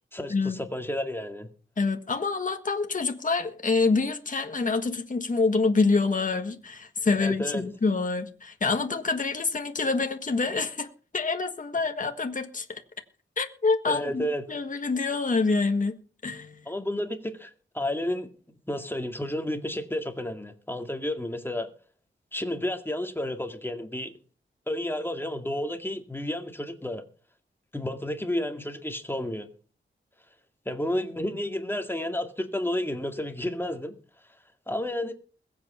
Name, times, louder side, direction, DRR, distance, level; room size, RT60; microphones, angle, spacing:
voice 1, 0.1-1.5 7.1-7.6 13.9-14.4 16.7-18.3 18.7-21.7 22.3-24.1 24.7-27.0 27.7-29.5 30.7-33.9 34.7-35.1, left 1 dB, 10° left, 2.1 m, -31 dB
voice 2, 1.8-10.9 11.1-12.7 13.4-16.0 16.2-16.6, left 4 dB, 40° left, 1.5 m, -26 dB
21.5 x 8.1 x 4.3 m
wide cardioid pair, 85°, 20 cm